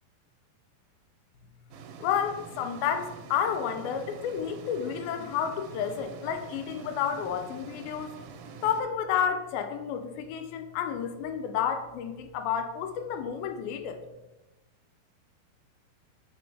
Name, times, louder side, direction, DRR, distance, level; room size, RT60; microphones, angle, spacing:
sound 1, 1.7-8.8, right 5 dB, 85° right, 2.3 m, -46 dB
voice 1, 2.0-8.2 8.6-14.0, left 8 dB, 85° left, 7 dB, 2.4 m, -31 dB
7.0 x 3.4 x 4.6 m, 1.0 s
omnidirectional pair, 4.3 m